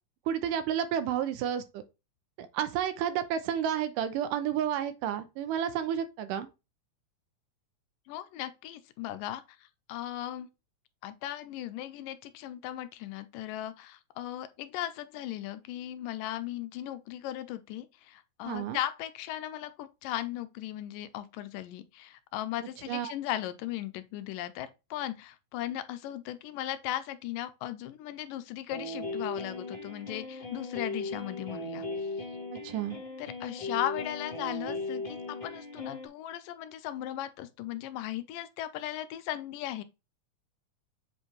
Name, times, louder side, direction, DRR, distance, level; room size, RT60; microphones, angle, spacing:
voice 1, 0.3-1.8 2.4-6.5 18.5-18.8 22.9-23.1 32.6-33.0, right 9 dB, 80° right, 2.3 m, -31 dB
voice 2, 8.1-9.4 9.9-10.5 11.0-32.1 33.2-39.8, left 13 dB, 90° left, 2.3 m, -37 dB
sound 1, 28.7-36.1, left 2 dB, 30° left, 0.9 m, -37 dB
7.8 x 4.3 x 3.2 m
omnidirectional pair, 3.8 m